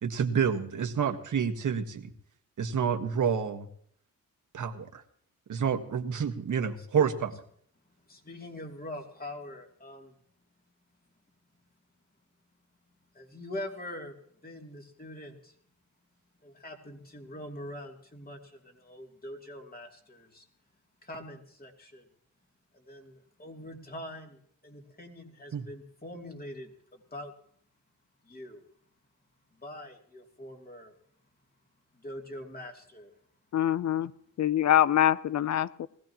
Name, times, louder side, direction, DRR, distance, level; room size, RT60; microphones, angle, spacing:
voice 1, 0.0-2.1 2.6-3.7 4.5-5.0 5.5-7.3 25.5-25.6, right 7 dB, 65° right, 1.6 m, -28 dB
voice 2, 8.1-10.2 13.1-14.1 14.4-15.5 16.4-20.5 21.0-22.1 22.7-27.3 28.2-28.6 29.6-30.9 31.9-33.1 34.8-34.9, left 1 dB, 25° left, 2.9 m, -43 dB
voice 3, 33.5-34.1 34.4-35.9, left 11 dB, 55° left, 0.6 m, -24 dB
20.5 x 16.0 x 3.0 m
cardioid pair, 85°, 33 cm